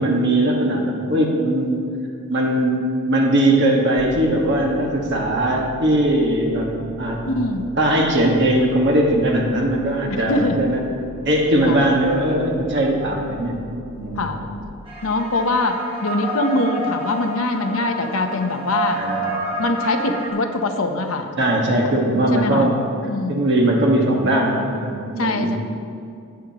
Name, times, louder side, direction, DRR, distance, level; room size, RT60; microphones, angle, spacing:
voice 1, 0.0-1.8 2.3-7.3 7.8-10.8 11.2-13.6 13.9-14.3 19.0-19.3 21.4-22.8 23.3-25.5, right 1 dB, 55° right, 0 dB, 1.6 m, -19 dB
sound 1, 4.0-14.6, left 2 dB, 30° left, 1.2 m, -39 dB
voice 2, 7.2-7.6 10.1-10.6 11.6-11.8 14.2-14.4 15.0-19.0 19.6-21.3 21.8-21.9 22.3-22.7 23.0-23.4 25.2-25.6, left 2 dB, 75° left, 6 dB, 0.8 m, -23 dB
sound 2, 14.9-20.3, right 2 dB, 25° right, 2.0 m, -29 dB
17.0 x 7.5 x 3.0 m, 2.4 s
head